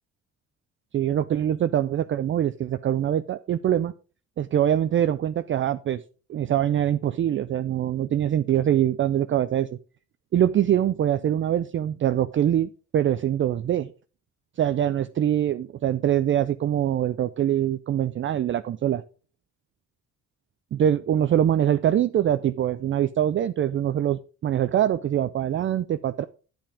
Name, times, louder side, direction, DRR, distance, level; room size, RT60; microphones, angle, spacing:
voice 1, 0.9-3.9 4.4-6.0 6.3-9.7 10.3-13.9 14.6-19.0 20.7-26.2, right 10 dB, 40° right, 12 dB, 0.4 m, -23 dB
8.9 x 7.6 x 3.5 m, 0.36 s
cardioid pair, 90°, 30 cm